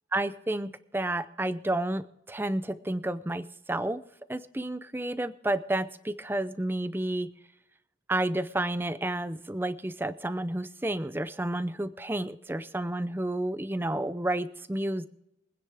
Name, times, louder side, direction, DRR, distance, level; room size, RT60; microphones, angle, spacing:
voice 1, 0.1-4.0 4.3-7.3 8.1-15.1, right 1 dB, 10° right, 14 dB, 0.5 m, -31 dB
24.5 x 9.8 x 3.5 m, 0.87 s
head